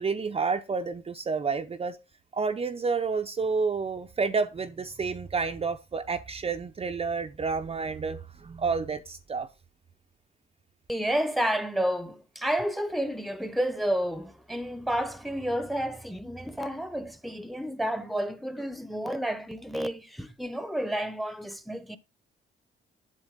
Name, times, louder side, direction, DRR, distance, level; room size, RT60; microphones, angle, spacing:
voice 1, 0.0-2.0 2.3-9.5, right 4 dB, 30° right, 0.6 m, -30 dB
voice 2, 10.9-22.0, equal, ahead, 0.9 m, -30 dB
8.0 x 7.3 x 3.7 m
cardioid pair, 90°, 20 cm